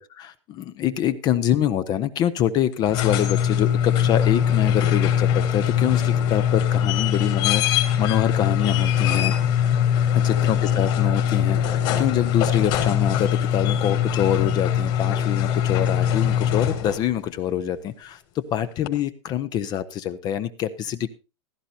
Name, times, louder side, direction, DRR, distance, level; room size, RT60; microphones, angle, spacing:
voice 1, 0.0-9.3 10.2-21.1, left 10 dB, 25° left, 14 dB, 0.6 m, -25 dB
sound 1, 2.7-17.1 18.9-19.0, left 9 dB, 45° left, 3.1 m, -22 dB
16.0 x 13.0 x 2.7 m, 0.30 s
supercardioid pair, 155°, 16 cm